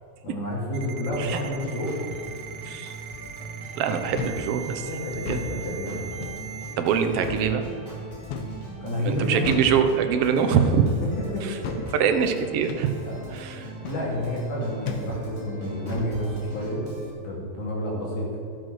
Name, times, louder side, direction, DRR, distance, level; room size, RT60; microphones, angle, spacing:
voice 1, 0.2-1.9 4.8-6.1 8.8-9.4 10.3-10.6 11.3-11.9 13.0-13.2 13.9-16.8 17.1-18.4, equal, 90° left, -4 dB, 4.2 m, -30 dB
Ringtone, 0.7-6.7, right 9 dB, 85° right, 2.2 m, -40 dB
Organ, 1.1-17.1, right 1 dB, 15° right, 3.4 m, -41 dB
voice 2, 3.8-4.9 5.3-5.4 6.8-7.6 9.0-10.8 11.4-11.5 11.9-12.9 13.3-13.7, right 7 dB, 70° right, 6 dB, 1.6 m, -23 dB
sound 1, 4.2-4.5 5.2-5.5 6.2-6.4 7.2-7.5 8.3-8.6 9.4-9.8 10.6-10.9 11.6-11.9 12.7-12.9 13.8-14.0 14.9-15.1 15.9-16.2, left 5 dB, 65° left, 1.5 m, -33 dB
13.5 x 7.7 x 6.3 m, 2.5 s
omnidirectional pair, 3.4 m